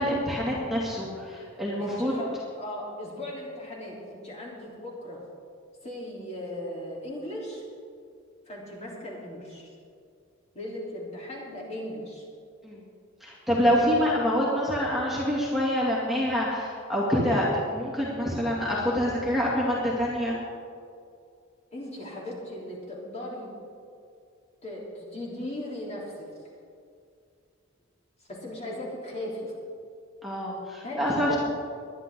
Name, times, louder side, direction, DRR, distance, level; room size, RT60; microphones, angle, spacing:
voice 1, 0.0-2.2 12.6-12.8 13.2-17.4 17.7-20.4 30.2-31.4, equal, ahead, -6 dB, 2.3 m, -26 dB
voice 2, 1.8-5.2 5.8-7.6 8.5-9.7 10.5-12.2 21.7-23.5 24.6-26.3 28.3-29.5 30.8-31.4, left 1 dB, 30° left, -5 dB, 3.5 m, -37 dB
21.0 x 11.0 x 3.8 m, 2.3 s
head